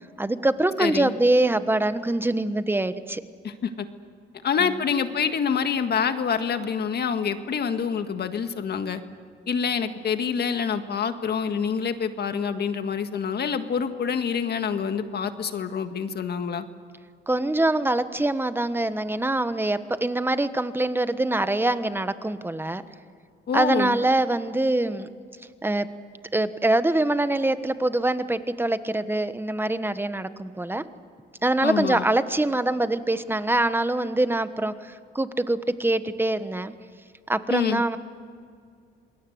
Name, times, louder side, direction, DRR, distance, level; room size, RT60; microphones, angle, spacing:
voice 1, 0.2-3.2 4.6-4.7 17.3-22.8 23.5-25.1 25.6-25.9 26.3-30.8 31.4-36.7 37.3-38.0, right 2 dB, 10° right, 12 dB, 1.2 m, -24 dB
voice 2, 0.8-1.1 3.4-3.9 4.4-9.0 9.5-16.7 23.5-24.0 31.6-32.1 37.5-37.8, left 6 dB, 55° left, 8 dB, 1.8 m, -26 dB
27.5 x 21.0 x 7.9 m, 2.2 s
cardioid pair, 90°, 20 cm